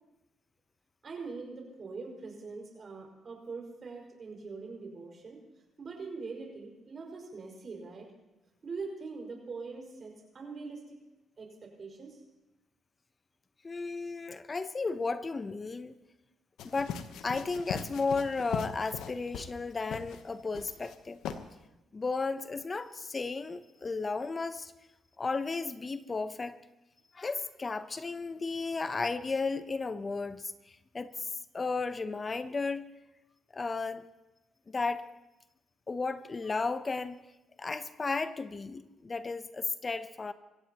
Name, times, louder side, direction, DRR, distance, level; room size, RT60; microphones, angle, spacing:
voice 1, 1.0-5.4 5.8-8.1 8.6-11.0 11.4-12.2, right 4 dB, 45° right, 0 dB, 5.2 m, -43 dB
voice 2, 13.6-15.9 16.6-16.9 17.2-21.2 21.9-24.7 25.2-26.5 27.1-31.3 31.5-32.8 33.5-34.1 34.7-35.1 35.9-37.2 37.6-40.3, left 4 dB, 30° left, 12 dB, 0.7 m, -34 dB
sound 1, 16.6-19.6 19.9-20.2 20.5-20.9 21.2-21.4, left 7 dB, 85° left, 1.0 m, -39 dB
24.5 x 16.0 x 3.0 m, 0.97 s
cardioid pair, 90°, 0 cm